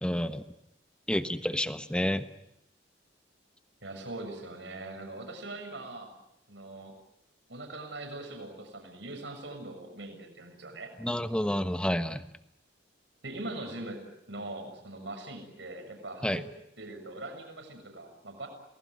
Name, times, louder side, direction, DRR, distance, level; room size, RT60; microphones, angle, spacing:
voice 1, 0.0-0.4 1.1-2.3 11.0-12.2 16.2-16.4, equal, 5° left, 10 dB, 1.2 m, -29 dB
voice 2, 3.8-6.1 6.5-7.0 7.5-10.9 13.2-16.4 16.8-18.5, right 2 dB, 75° right, 4 dB, 7.0 m, -41 dB
28.5 x 20.0 x 9.5 m, 0.79 s
head